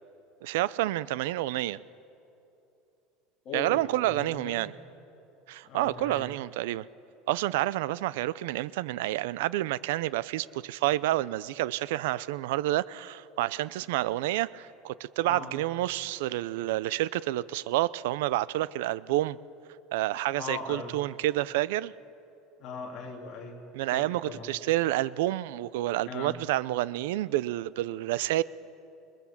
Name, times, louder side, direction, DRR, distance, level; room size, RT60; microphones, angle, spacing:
voice 1, 0.4-1.8 3.5-4.7 5.5-6.9 7.3-19.4 19.9-21.9 23.7-28.4, right 16 dB, 85° right, 19 dB, 0.5 m, -29 dB
voice 2, 3.4-4.6 5.6-6.3 15.2-15.5 20.4-20.9 22.6-23.6 23.9-24.5 26.1-26.4, left 5 dB, 40° left, -1 dB, 2.8 m, -39 dB
28.0 x 21.0 x 7.3 m, 2.8 s
cardioid pair, 160°, 0 cm